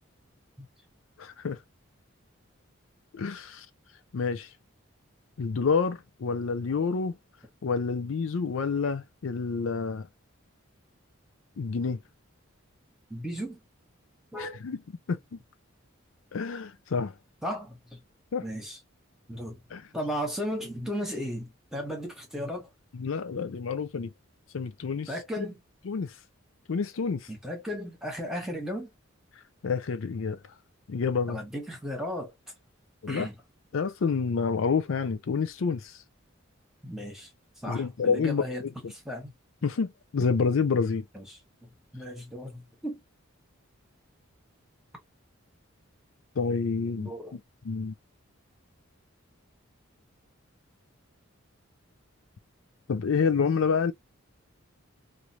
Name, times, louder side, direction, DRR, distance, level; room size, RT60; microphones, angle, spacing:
voice 1, 1.2-1.6 3.1-3.7 4.1-4.5 5.4-7.1 7.6-10.1 11.6-12.0 14.4-14.8 15.1-15.4 16.3-17.1 18.3-18.4 19.7-19.9 22.9-24.1 24.5-25.1 25.9-26.1 26.7-27.3 29.6-30.4 30.9-31.4 33.0-33.3 33.7-36.0 37.7-38.7 39.6-41.0 46.4-47.4 47.6-47.9 52.9-53.9, left 5 dB, 70° left, 0.4 m, -28 dB
voice 2, 13.1-13.6 14.3-14.6 17.4-18.0 18.4-18.8 19.3-19.6 19.9-22.7 25.1-25.5 27.3-28.9 31.3-32.3 33.1-33.3 36.8-37.3 37.6-38.6 38.9-39.3 41.1-41.4 41.9-43.0 47.0-47.4, equal, ahead, 1.1 m, -35 dB
3.1 x 2.6 x 2.8 m
head